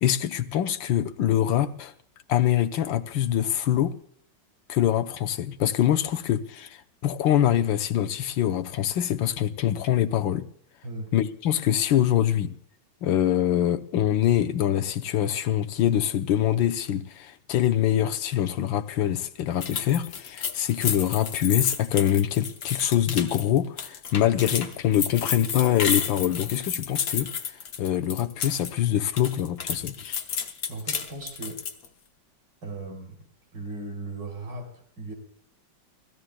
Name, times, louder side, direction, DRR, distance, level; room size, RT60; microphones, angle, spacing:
voice 1, 0.0-1.9 2.3-4.0 4.7-10.5 11.1-12.5 13.0-27.3 27.8-30.2, left 11 dB, 90° left, 1.5 m, -24 dB
sound 1, 19.6-28.7 29.0-31.9, left 7 dB, 55° left, 1.3 m, -31 dB
voice 2, 30.7-31.6 32.6-33.2 33.5-35.1, right 2 dB, 65° right, 3.9 m, -37 dB
29.5 x 16.0 x 2.2 m
omnidirectional pair, 2.0 m